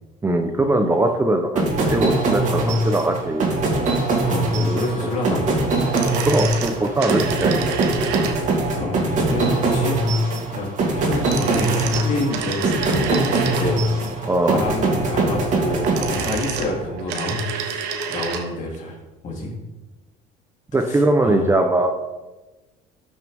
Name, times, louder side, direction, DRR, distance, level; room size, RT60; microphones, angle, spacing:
voice 1, 0.2-3.5 4.6-4.8 5.3-5.4 6.0-7.6 14.3-14.6 20.7-21.9, right 2 dB, 15° right, 5 dB, 0.8 m, -21 dB
sound 1, 1.6-16.9, right 2 dB, 50° right, 2.7 m, -22 dB
voice 2, 4.2-5.5 8.7-13.8 14.4-19.0 19.2-19.6 20.8-21.5, left 2 dB, 45° left, -2 dB, 3.2 m, -28 dB
sound 2, 5.8-8.7 11.1-14.0 15.6-18.5 18.7-18.8, right 6 dB, 85° right, 1.2 m, -29 dB
13.0 x 6.3 x 3.6 m, 1.1 s
cardioid pair, 115°, 17 cm